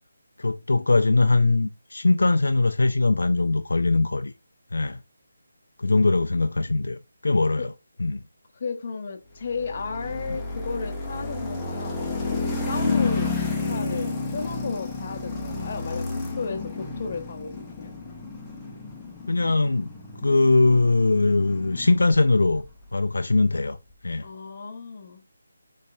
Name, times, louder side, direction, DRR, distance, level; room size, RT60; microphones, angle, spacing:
voice 1, 0.4-4.3 4.7-5.0 5.8-7.7 8.0-8.2 19.3-19.9 20.2-22.6 22.9-23.8 24.0-24.3, left 3 dB, 75° left, 0.4 m, -21 dB
voice 2, 8.5-13.3 13.6-17.9 24.2-25.2, left 5 dB, 40° left, 0.7 m, -34 dB
sound 1, 9.5-22.7, left 3 dB, 10° left, 0.8 m, -31 dB
5.4 x 3.2 x 2.6 m
figure-of-eight pair, 160°, 0 cm